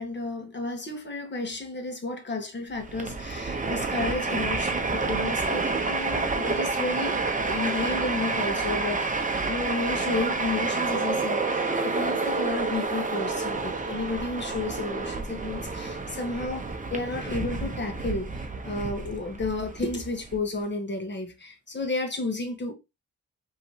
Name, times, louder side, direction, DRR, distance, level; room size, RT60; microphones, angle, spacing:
voice 1, 0.0-7.2 7.5-18.3 18.6-22.7, left 3 dB, 35° left, 1.4 m, -32 dB
Train, 2.8-20.4, right 3 dB, 25° right, 0.9 m, -29 dB
5.2 x 3.1 x 2.8 m
cardioid pair, 95°, 32 cm